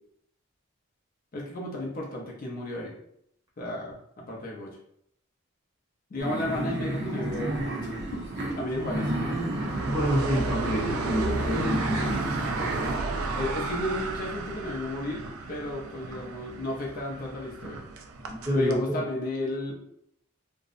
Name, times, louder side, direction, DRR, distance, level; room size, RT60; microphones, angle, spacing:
voice 1, 1.3-3.0 3.6-4.7 6.1-8.2 8.6-9.1 13.2-15.2 15.5-17.8 18.5-19.7, left 1 dB, 45° left, -2 dB, 0.5 m, -33 dB
sound 1, 6.2-12.9, right 1 dB, 55° right, 0.7 m, -31 dB
sound 2, 7.3-18.8, right 3 dB, 85° right, 0.3 m, -34 dB
voice 2, 9.9-12.0 18.3-19.0, equal, 15° right, -5 dB, 0.7 m, -27 dB
2.6 x 2.0 x 2.4 m, 0.73 s
head